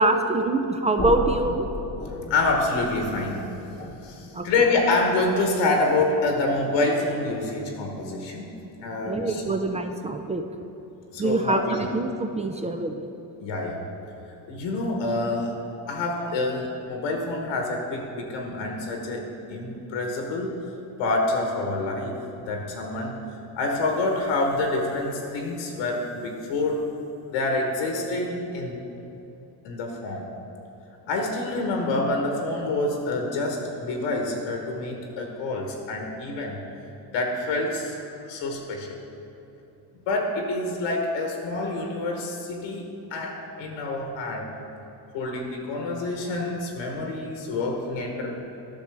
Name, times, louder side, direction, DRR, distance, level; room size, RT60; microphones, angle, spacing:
voice 1, 0.0-1.7 4.3-4.7 9.1-10.4 11.2-13.1, right 2 dB, 15° right, 5 dB, 0.3 m, -25 dB
sound 1, 1.0-6.9, left 2 dB, 10° left, 1.0 m, -36 dB
voice 2, 2.1-3.4 4.0-8.5 8.8-9.6 11.1-11.8 13.4-13.8 14.5-20.6 21.0-22.2 22.5-23.2 23.6-26.8 27.3-28.8 29.6-30.3 31.1-36.6 37.1-38.0 38.2-38.9 40.1-44.5 45.1-48.4, left 2 dB, 80° left, 2 dB, 1.1 m, -27 dB
10.5 x 6.0 x 3.4 m, 2.9 s
supercardioid pair, 80°, 46 cm